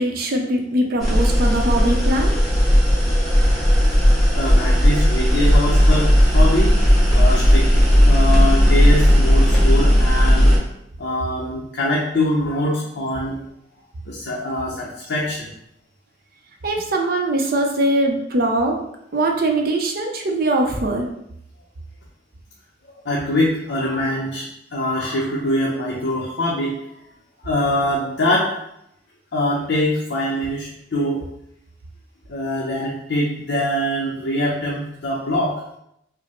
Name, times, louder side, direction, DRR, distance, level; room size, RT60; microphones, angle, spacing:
voice 1, 0.0-2.4 16.6-18.8 19.1-21.1, right 1 dB, 50° right, 2 dB, 0.5 m, -21 dB
sound 1, 1.0-10.6, equal, ahead, 1.0 m, -15 dB
voice 2, 4.3-6.7 7.1-10.5 11.0-13.4 14.1-15.5 23.0-26.7 27.4-28.5 29.3-31.2 32.3-35.5, left 1 dB, 65° left, -4 dB, 0.6 m, -23 dB
4.9 x 2.0 x 3.0 m, 0.77 s
head